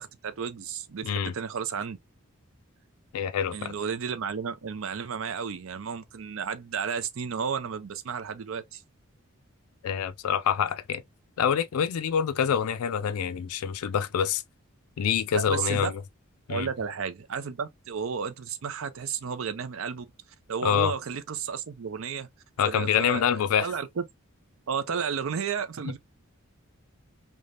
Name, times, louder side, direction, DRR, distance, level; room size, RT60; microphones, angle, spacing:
voice 1, 0.0-2.0 3.5-8.8 15.3-15.9 16.5-20.1 20.5-22.3 22.6-24.0 24.7-26.0, right 6 dB, 70° right, 0.5 m, -32 dB
voice 2, 1.0-1.3 3.1-3.8 9.8-11.0 11.4-14.4 15.0-16.0 16.5-16.7 20.6-20.9 22.6-23.8 25.8-25.9, left 8 dB, 85° left, 0.3 m, -26 dB
3.3 x 2.1 x 2.4 m
head